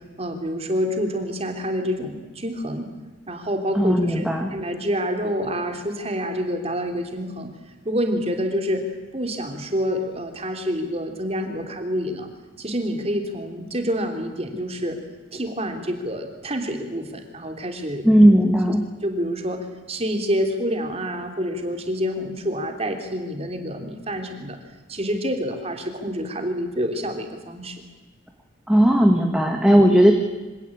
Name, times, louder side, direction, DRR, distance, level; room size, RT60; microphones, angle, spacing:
voice 1, 0.0-2.9 3.3-4.2 4.5-7.5 7.8-12.3 12.6-15.0 15.3-18.1 19.0-19.6 19.9-24.6 24.9-27.8, equal, 30° right, 4 dB, 3.1 m, -27 dB
voice 2, 3.8-4.5 18.0-18.8 28.7-30.1, equal, 5° right, 2 dB, 1.8 m, -16 dB
25.5 x 17.5 x 9.0 m, 1.2 s
head